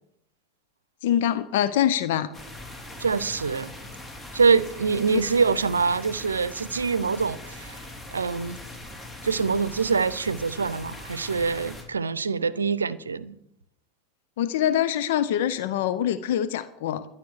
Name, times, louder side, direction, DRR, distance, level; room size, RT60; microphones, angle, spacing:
voice 1, 1.0-2.3 5.1-5.2 14.4-17.1, left 10 dB, 70° left, 0.7 m, -24 dB
sound 1, 2.3-11.8, left 1 dB, 20° left, 3.6 m, -41 dB
voice 2, 3.0-3.7 4.3-7.8 8.1-8.6 9.2-13.4, right 5 dB, 90° right, 0.6 m, -24 dB
12.0 x 9.8 x 6.5 m
hypercardioid pair, 80°, 0 cm